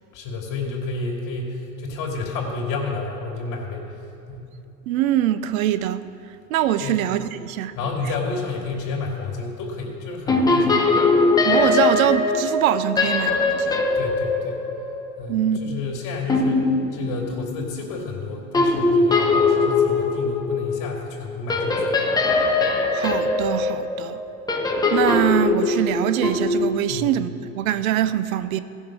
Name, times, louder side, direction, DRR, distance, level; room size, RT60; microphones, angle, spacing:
voice 1, 0.1-3.9 4.3-4.5 6.8-7.0 7.7-10.9 13.9-14.6 15.2-22.0 26.9-27.1, left 3 dB, 45° left, 2.7 m, -30 dB
voice 2, 4.9-6.0 6.5-7.7 11.4-13.9 15.3-15.9 22.9-24.2 24.9-28.6, right 11 dB, 80° right, 0.6 m, -23 dB
sound 1, 10.3-15.6 16.3-17.9 18.5-26.8, left 3 dB, 10° left, 0.8 m, -21 dB
15.0 x 5.8 x 6.2 m
supercardioid pair, 125°, 41 cm